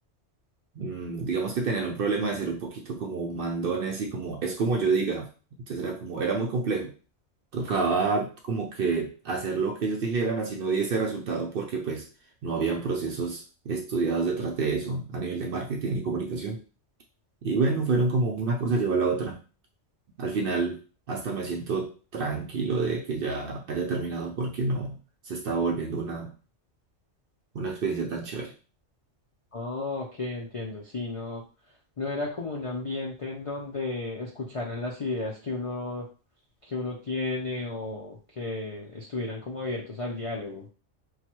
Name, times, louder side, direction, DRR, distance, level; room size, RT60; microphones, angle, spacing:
voice 1, 0.8-5.3 5.7-6.9 7.5-12.1 12.4-16.6 17.4-19.4 20.2-20.8 21.1-25.0 25.3-26.3 27.5-28.5, right 4 dB, 60° right, 2 dB, 0.6 m, -28 dB
voice 2, 29.5-31.5 32.0-36.1 36.6-40.7, left 2 dB, 55° left, -3 dB, 0.4 m, -33 dB
3.1 x 2.2 x 2.9 m, 0.35 s
omnidirectional pair, 1.3 m